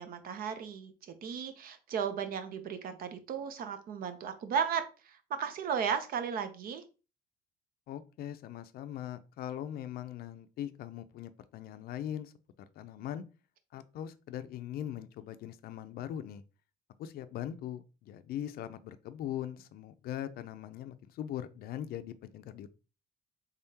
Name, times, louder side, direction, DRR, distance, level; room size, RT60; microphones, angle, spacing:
voice 1, 0.0-6.8, right 7 dB, 60° right, 0.7 m, -35 dB
voice 2, 7.9-12.3 12.8-13.2 13.7-16.4 17.0-22.7, left 11 dB, 65° left, 0.4 m, -40 dB
3.6 x 3.5 x 2.8 m
cardioid pair, 110°, 17 cm